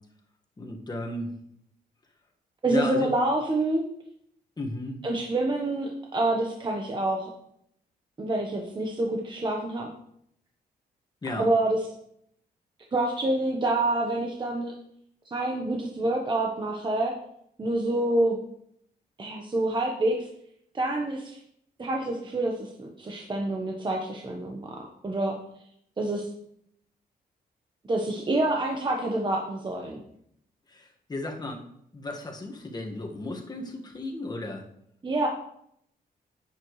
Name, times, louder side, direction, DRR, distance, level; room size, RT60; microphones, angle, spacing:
voice 1, 0.6-1.3 2.7-3.1 4.6-5.0 11.2-11.5 30.7-31.6 31.9-34.6, left 2 dB, 25° left, 1 dB, 1.8 m, -34 dB
voice 2, 2.6-3.8 5.0-7.3 8.2-9.9 11.3-11.8 12.9-14.7 15.2-17.1 17.6-18.4 19.2-20.3 20.7-21.4 21.8-25.4 26.0-26.3 27.9-30.0 35.0-35.3, right 2 dB, 30° right, 0 dB, 1.2 m, -27 dB
11.0 x 9.0 x 3.3 m, 0.72 s
cardioid pair, 115°, 16 cm